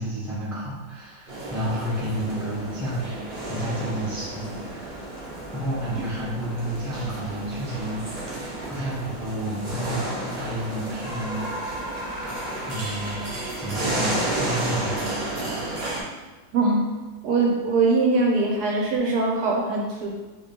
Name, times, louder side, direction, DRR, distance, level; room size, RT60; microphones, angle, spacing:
voice 1, 0.0-4.9 5.5-11.7 12.7-13.2 13.6-15.1, right 1 dB, ahead, -7 dB, 0.6 m, -31 dB
sound 1, 1.3-16.0, right 1 dB, 55° right, 0.5 m, -32 dB
voice 2, 16.5-16.9 17.2-20.1, right 3 dB, 70° right, -1 dB, 1.0 m, -22 dB
2.9 x 2.9 x 4.2 m, 1.2 s
omnidirectional pair, 1.9 m